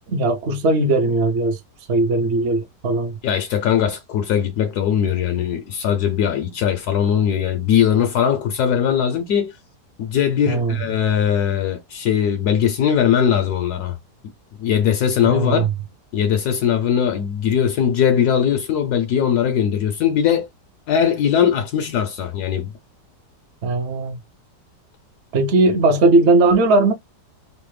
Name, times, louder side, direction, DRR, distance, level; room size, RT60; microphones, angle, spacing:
voice 1, 0.1-1.6 1.9-3.2 10.5-10.7 15.2-15.7 23.6-24.2 25.3-26.9, right 2 dB, 55° right, 0.8 m, -18 dB
voice 2, 3.2-9.6 10.0-14.0 14.6-15.7 16.1-20.5 20.9-22.7, left 8 dB, 75° left, 1.0 m, -20 dB
3.2 x 2.1 x 3.1 m
omnidirectional pair, 1.8 m